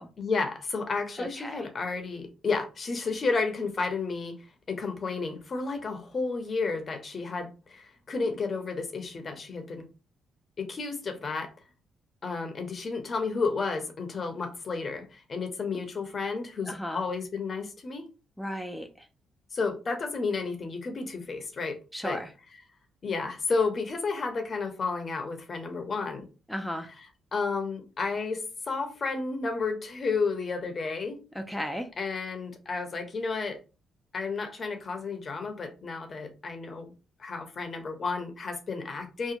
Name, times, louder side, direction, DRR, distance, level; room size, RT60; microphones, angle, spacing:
voice 1, 0.2-4.4 4.7-9.9 10.6-11.5 12.2-18.0 19.5-21.8 22.0-22.2 23.0-26.3 26.9-27.1 27.3-31.2 32.0-33.6 34.1-36.9 37.2-39.3, left 4 dB, 40° left, 0.6 m, -32 dB
voice 2, 1.2-1.6 16.7-17.0 18.4-18.9 21.9-22.3 26.5-26.9 31.4-31.9, equal, ahead, 0.3 m, -34 dB
2.7 x 2.1 x 2.5 m
cardioid pair, 90°, 0 cm